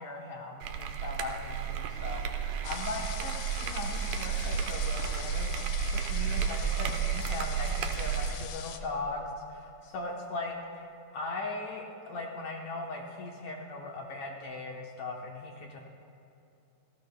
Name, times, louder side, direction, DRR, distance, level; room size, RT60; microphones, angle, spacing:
voice 1, 0.0-10.9 11.1-15.8, left 3 dB, 65° left, -1 dB, 2.0 m, -39 dB
sound 1, 0.6-8.4, right 7 dB, 75° right, 2.3 m, -32 dB
sound 2, 2.6-8.8, left 10 dB, 90° left, 2.6 m, -43 dB
28.5 x 17.5 x 2.2 m, 2.7 s
omnidirectional pair, 4.1 m